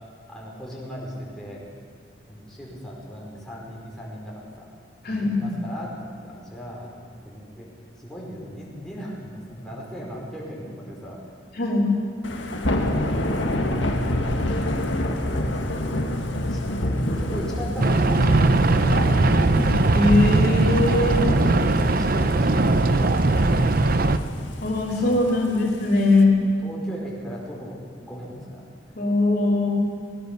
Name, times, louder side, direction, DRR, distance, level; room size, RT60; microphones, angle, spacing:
voice 1, 0.3-1.6 2.3-4.7 5.0-6.0 6.2-7.7 8.0-11.2 13.0-14.8 15.1-19.6 21.1-24.3 24.9-25.5 26.2-28.6, equal, 5° left, -4 dB, 4.9 m, -38 dB
voice 2, 5.0-5.5 11.6-11.9 19.9-21.2 24.6-26.4 28.9-29.7, left 2 dB, 55° left, -3 dB, 3.3 m, -20 dB
Thunder / Rain, 12.2-26.2, left 1 dB, 85° left, 1.9 m, -28 dB
sound 1, 17.8-24.2, right 2 dB, 50° right, 0.7 m, -19 dB
20.5 x 19.0 x 6.8 m, 2.2 s
head